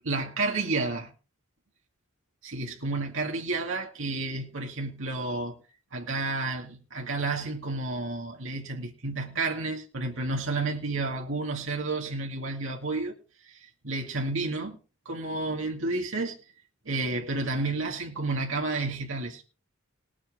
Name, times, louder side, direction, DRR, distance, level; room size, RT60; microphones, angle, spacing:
voice 1, 0.0-1.1 2.4-5.5 5.9-13.1 13.5-13.6 13.8-14.8 15.1-16.4 16.9-19.4, right 3 dB, 65° right, 2.2 m, -31 dB
19.5 x 8.9 x 3.6 m
head